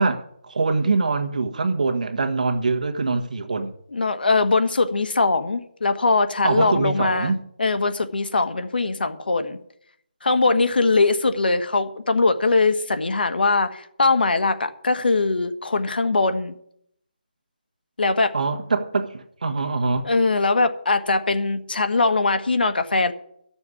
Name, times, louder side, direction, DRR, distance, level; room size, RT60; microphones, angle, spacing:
voice 1, 0.0-3.7 6.4-7.4 18.3-20.1, right 3 dB, 55° right, 1.5 m, -23 dB
voice 2, 3.9-7.3 7.6-9.6 10.2-16.5 18.0-18.3 20.0-23.1, left 3 dB, 80° left, 1.5 m, -21 dB
12.5 x 7.1 x 8.2 m
hypercardioid pair, 175°, 5 cm